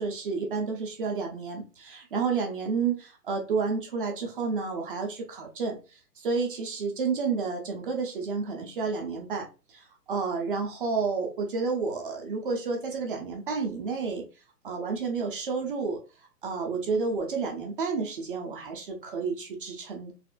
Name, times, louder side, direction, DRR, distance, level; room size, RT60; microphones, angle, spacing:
voice 1, 0.0-14.2 14.6-16.0 16.4-20.1, right 4 dB, 35° right, 2 dB, 0.6 m, -30 dB
4.1 x 2.4 x 2.4 m, 0.32 s
hypercardioid pair, 140°, 50 cm